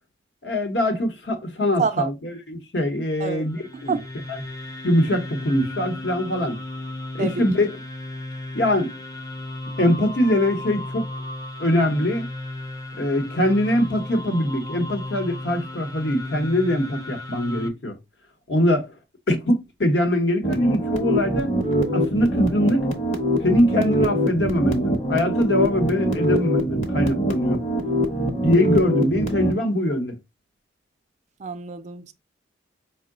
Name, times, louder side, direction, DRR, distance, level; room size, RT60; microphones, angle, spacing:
voice 1, 0.4-3.9 4.8-6.6 7.2-7.8 8.5-9.0 9.8-11.0 11.6-12.3 13.0-18.0 18.5-18.9 19.3-21.6 21.9-22.9 23.4-27.6 28.4-30.2, left 1 dB, 65° left, 0.9 m, -22 dB
sound 1, 3.4-17.7, left 2 dB, 20° left, 0.5 m, -35 dB
sound 2, 20.4-29.5, right 1 dB, 40° left, 0.8 m, -23 dB
voice 2, 31.4-32.1, right 5 dB, 40° right, 0.3 m, -27 dB
4.5 x 2.0 x 3.7 m
head